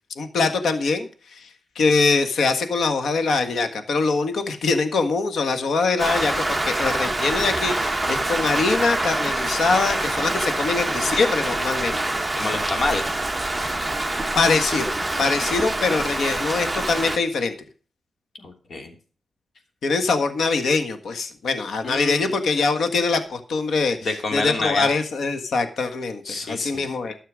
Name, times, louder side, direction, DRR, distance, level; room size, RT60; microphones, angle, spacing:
voice 1, 0.2-1.5 1.7-12.0 14.3-14.9 15.2-17.5 19.8-24.0 24.3-27.1, left 4 dB, 80° left, 8 dB, 1.5 m, -23 dB
Rain, 6.0-17.2, right 2 dB, 10° right, 1.2 m, -25 dB
voice 2, 12.4-13.2 18.4-18.9 21.8-22.3 24.0-24.9 26.2-26.8, left 2 dB, 55° left, 4 dB, 3.1 m, -27 dB
13.0 x 6.6 x 6.2 m, 0.40 s
wide cardioid pair, 115°, 0 cm